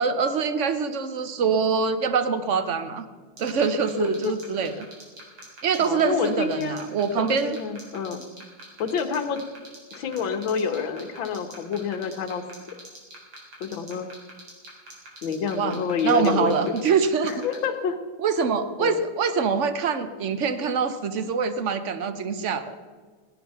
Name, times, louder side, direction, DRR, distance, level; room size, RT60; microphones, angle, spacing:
voice 1, 0.0-3.1 3.4-4.9 5.6-7.6 15.6-15.8 16.0-17.5 18.2-22.8, right 5 dB, 70° right, 10 dB, 0.7 m, -24 dB
sound 1, 3.4-17.6, right 1 dB, 90° right, 4.8 m, -43 dB
voice 2, 4.0-4.3 5.8-6.8 7.1-8.2 8.8-9.4 9.9-12.4 13.6-14.1 15.2-16.8 17.2-18.0 18.8-18.9, left 6 dB, 65° left, 7 dB, 1.8 m, -28 dB
17.5 x 11.0 x 5.6 m, 1.5 s
omnidirectional pair, 2.4 m